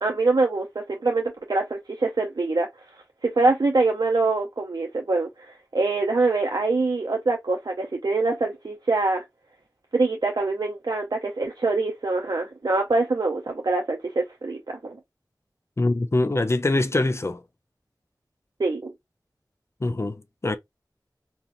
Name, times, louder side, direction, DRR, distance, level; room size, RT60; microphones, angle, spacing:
voice 1, 0.0-2.7 3.2-9.2 9.9-15.0 18.6-18.9, right 3 dB, 65° right, 0.5 m, -24 dB
voice 2, 15.8-17.4 19.8-20.6, left 2 dB, 40° left, 0.3 m, -24 dB
2.7 x 2.5 x 2.5 m
wide cardioid pair, 45°, 7 cm